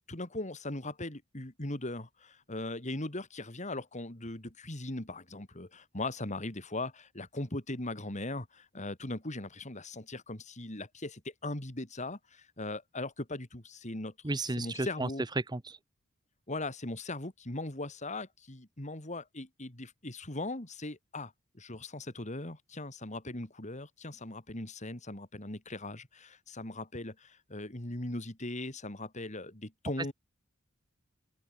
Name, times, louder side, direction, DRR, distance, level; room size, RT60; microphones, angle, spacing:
voice 1, 0.1-14.1 14.6-15.2 16.5-30.1, left 2 dB, 35° left, 3.4 m, -39 dB
voice 2, 14.2-15.1 15.5-15.8, right 2 dB, 20° right, 0.9 m, -33 dB
open air
head